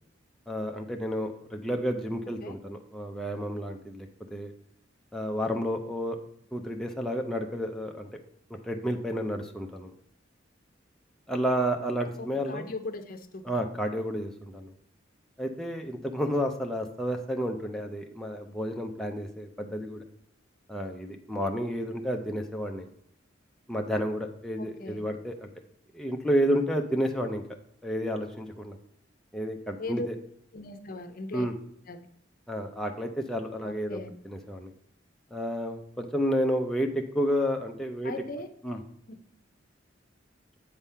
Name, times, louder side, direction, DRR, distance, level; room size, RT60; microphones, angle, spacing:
voice 1, 0.5-4.5 5.1-6.2 6.5-8.1 8.5-9.9 11.3-12.7 13.4-14.7 15.4-20.0 20.7-22.9 23.7-25.5 25.9-27.4 27.8-28.8 29.3-30.1 31.3-31.5 32.5-34.0 34.2-34.7 35.3-38.1 38.6-38.8, equal, 5° left, 2 dB, 0.5 m, -31 dB
voice 2, 12.2-13.6 24.6-25.0 29.8-30.1 30.5-31.5 31.9-32.0 33.6-34.1 38.0-38.5 39.1-39.2, left 2 dB, 50° left, 8 dB, 0.7 m, -38 dB
8.1 x 3.6 x 5.5 m, 0.71 s
head